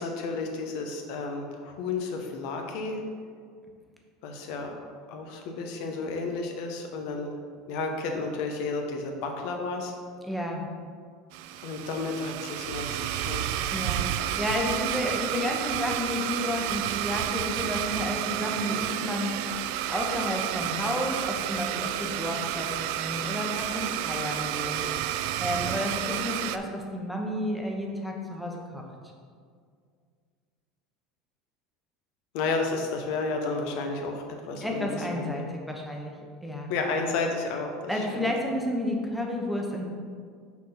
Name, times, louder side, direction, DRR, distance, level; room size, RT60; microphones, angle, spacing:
voice 1, 0.0-3.0 4.2-4.8 5.1-7.3 7.7-9.9 11.6-14.0 32.3-35.3 36.7-38.3, left 3 dB, 65° left, 3 dB, 1.1 m, -32 dB
voice 2, 10.2-10.7 13.7-19.4 19.9-24.8 25.4-28.9 34.6-36.2 36.4-36.7 37.9-39.8, left 1 dB, ahead, 0 dB, 1.0 m, -31 dB
Domestic sounds home sounds, 11.3-26.6, right 12 dB, 70° right, 0.3 m, -31 dB
6.2 x 4.2 x 5.7 m, 2.1 s
supercardioid pair, 135°, 0 cm